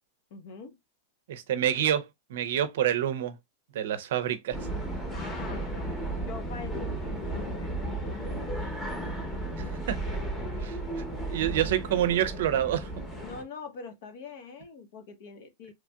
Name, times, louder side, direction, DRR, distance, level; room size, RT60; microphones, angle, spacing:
voice 1, 0.3-0.8 5.1-5.9 6.2-9.2 9.5-9.7 11.4-11.7 13.2-15.7, left 5 dB, 60° left, 0.7 m, -44 dB
voice 2, 1.3-3.4 3.7-4.6 9.6-10.2 10.6-10.8 11.3-12.9, right 11 dB, 70° right, 0.5 m, -27 dB
sound 1, 4.5-13.4, right 1 dB, 10° left, 0.9 m, -34 dB
3.0 x 2.6 x 2.2 m
hypercardioid pair, 125°, 0 cm